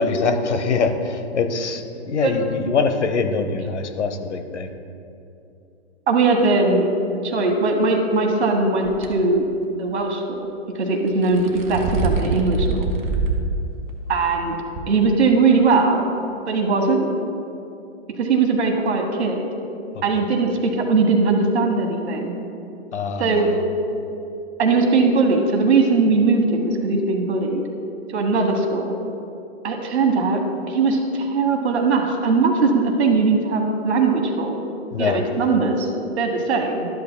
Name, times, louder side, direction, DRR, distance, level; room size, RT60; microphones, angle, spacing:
voice 1, 0.0-4.7 22.9-23.6 34.9-35.6, left 4 dB, 80° left, 8 dB, 0.9 m, -24 dB
voice 2, 6.1-9.4 9.8-10.4 10.7-12.9 14.1-14.5 14.9-16.0 16.5-17.1 18.1-19.5 20.0-22.3 23.2-23.5 24.6-27.6 28.1-29.0 29.6-30.4 30.7-34.5 35.0-35.9 36.2-36.9, right 3 dB, 70° right, 3 dB, 1.3 m, -20 dB
sound 1, 8.8-9.1 11.1-13.5 13.9-14.0 14.8-14.9, right 3 dB, 45° right, 1.2 m, -24 dB
12.5 x 8.0 x 2.2 m, 2.7 s
hypercardioid pair, 130°, 34 cm